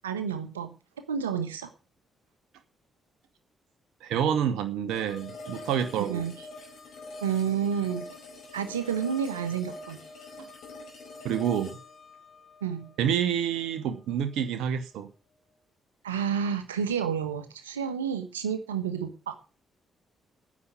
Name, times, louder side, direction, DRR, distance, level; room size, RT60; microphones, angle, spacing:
voice 1, 0.0-0.7 1.1-1.7 6.0-6.3 7.2-8.1 8.5-10.0 12.6-12.9 16.0-19.3, right 7 dB, 80° right, 1.3 m, -30 dB
voice 2, 4.0-6.2 10.4-10.5 11.2-11.8 13.0-15.1, right 9 dB, 60° right, 1.2 m, -28 dB
sound 1, 4.9-13.9, left 2 dB, 55° left, 4.5 m, -45 dB
9.6 x 7.5 x 9.3 m
figure-of-eight pair, 40°, 0 cm